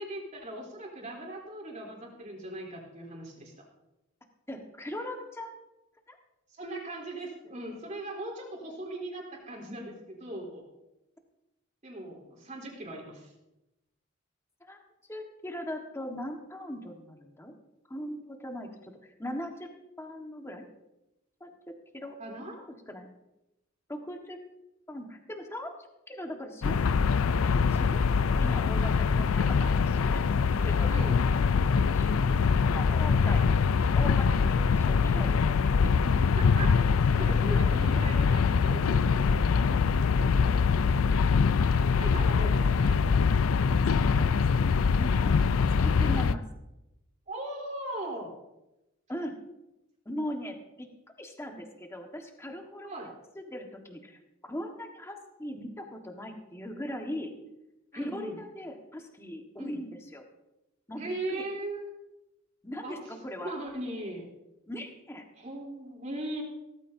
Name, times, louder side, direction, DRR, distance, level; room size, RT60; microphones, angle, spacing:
voice 1, 0.0-3.6 6.5-10.6 11.8-13.3 22.2-22.6 30.9-31.2 36.0-36.8 37.2-39.3 42.0-43.0 47.3-48.3 52.8-53.1 57.9-58.4 59.6-59.8 61.0-61.8 62.8-63.0 63.4-64.2 65.4-66.4, right 1 dB, 35° right, -1 dB, 3.4 m, -39 dB
voice 2, 4.5-5.5 6.1-6.2 14.6-14.8 15.1-17.6 17.9-19.7 20.0-20.6 21.4-21.6 21.9-22.2 22.9-23.1 23.9-24.4 24.9-25.7 26.1-26.8 27.7-28.0 28.4-30.2 30.6-31.1 31.9-32.3 32.7-33.6 33.9-35.4 35.8-36.0 43.9-46.4 49.1-49.4 50.0-50.9 51.2-52.9 53.3-57.3 57.9-60.2 60.9-61.0 61.3-61.4 62.6-63.5 64.7-65.3, equal, 15° left, 3 dB, 1.5 m, -39 dB
sound 1, 26.6-46.3, left 5 dB, 85° left, 0.4 m, -24 dB
16.5 x 14.0 x 2.7 m, 0.92 s
head